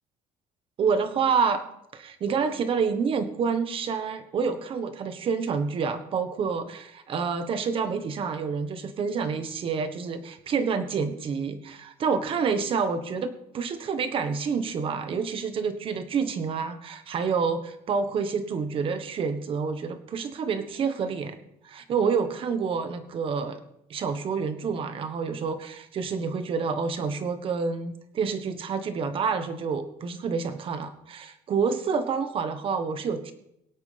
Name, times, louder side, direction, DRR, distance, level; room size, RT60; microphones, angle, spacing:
voice 1, 0.8-1.6 1.9-21.4 21.6-23.6 23.9-33.3, right 5 dB, 40° right, 9 dB, 1.4 m, -28 dB
24.0 x 8.2 x 3.5 m, 0.78 s
cardioid pair, 155°, 14 cm